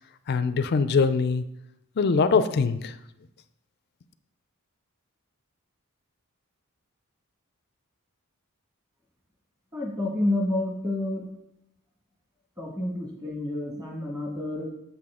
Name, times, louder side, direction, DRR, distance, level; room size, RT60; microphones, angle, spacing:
voice 1, 0.3-1.4 2.0-2.9, left 5 dB, 50° left, 11 dB, 0.4 m, -22 dB
voice 2, 9.7-11.3 12.6-14.7, left 1 dB, 15° right, -1 dB, 1.7 m, -29 dB
7.1 x 5.9 x 3.7 m, 0.83 s
head